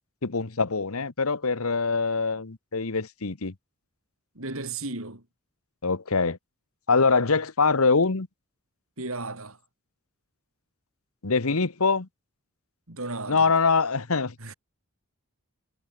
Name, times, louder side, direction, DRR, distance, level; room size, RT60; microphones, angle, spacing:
voice 1, 0.2-3.5 5.8-6.4 6.9-8.3 11.2-12.1 13.3-14.3, left 4 dB, 80° left, 1.2 m, -24 dB
voice 2, 4.4-5.2 9.0-9.6 12.9-13.5 14.4-14.5, right 3 dB, 70° right, 3.9 m, -34 dB
head